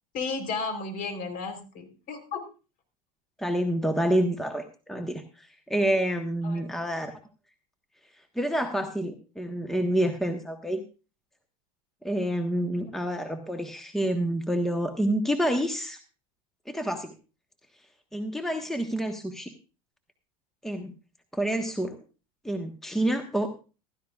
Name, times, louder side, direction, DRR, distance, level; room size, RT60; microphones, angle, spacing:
voice 1, 0.1-2.4 6.4-6.6, left 4 dB, 45° left, 7 dB, 3.9 m, -33 dB
voice 2, 3.4-7.1 8.3-10.8 12.0-16.0 16.7-17.1 18.1-19.5 20.6-20.9 21.3-21.9 22.4-23.5, right 1 dB, ahead, 5 dB, 1.3 m, -28 dB
15.5 x 13.5 x 2.4 m, 0.33 s
hypercardioid pair, 105°, 20 cm